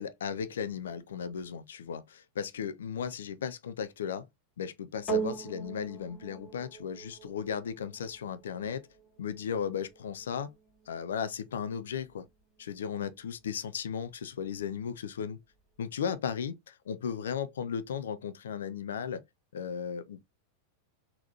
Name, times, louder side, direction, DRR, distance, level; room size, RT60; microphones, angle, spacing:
voice 1, 0.0-4.3 4.6-8.9 9.2-10.5 10.9-12.3 12.6-15.4 15.8-19.2 19.5-20.3, left 7 dB, 65° left, 0.3 m, -36 dB
sound 1, 5.1-13.6 14.4-14.5, right 6 dB, 20° left, 2.3 m, -41 dB
3.9 x 2.8 x 2.7 m
figure-of-eight pair, 90°, 0 cm